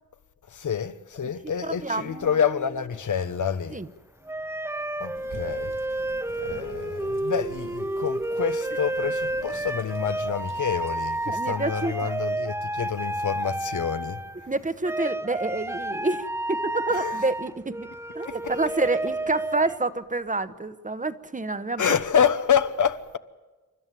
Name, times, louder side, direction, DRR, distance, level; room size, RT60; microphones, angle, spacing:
voice 1, 0.5-3.8 5.0-5.7 6.3-14.2 16.9-17.2 18.2-18.4 21.8-23.2, left 7 dB, 70° left, 1.1 m, -27 dB
voice 2, 1.6-2.4 3.7-3.9 11.3-12.1 14.5-17.9 18.1-21.8, right 3 dB, 25° right, 1.0 m, -28 dB
sound 1, 1.8-3.0 4.3-14.5 14.8-19.8, right 1 dB, 10° right, 0.8 m, -31 dB
sound 2, 5.1-11.3, right 4 dB, 40° right, 1.3 m, -48 dB
28.5 x 13.0 x 9.2 m
wide cardioid pair, 135°, 31 cm